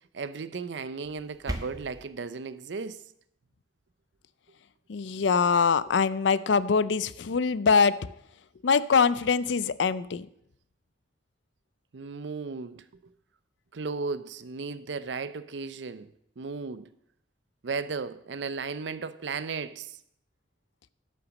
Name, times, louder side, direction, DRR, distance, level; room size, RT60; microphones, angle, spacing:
voice 1, 0.1-3.0 11.9-13.1 13.7-16.1 16.4-16.9 17.6-20.0, right 4 dB, 80° right, 0.6 m, -35 dB
sound 1, 1.0-2.0, right 1 dB, 20° right, 1.0 m, -37 dB
voice 2, 4.9-8.1 8.6-10.3, left 5 dB, 80° left, 0.5 m, -23 dB
11.5 x 5.9 x 6.3 m
head